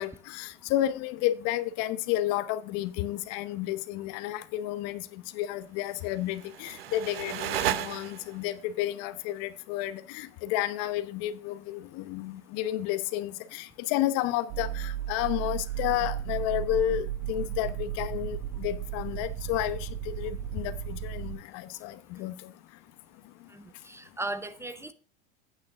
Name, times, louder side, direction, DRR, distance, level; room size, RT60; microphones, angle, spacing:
voice 1, 0.0-22.5, left 13 dB, 55° left, 1.0 m, -31 dB
sound 1, 6.2-8.5, right 12 dB, 80° right, 0.7 m, -33 dB
sound 2, 14.5-21.4, right 11 dB, 40° right, 2.2 m, -34 dB
voice 2, 23.5-24.9, right 2 dB, 10° right, 0.7 m, -37 dB
9.1 x 8.6 x 3.7 m
hypercardioid pair, 90°, 29 cm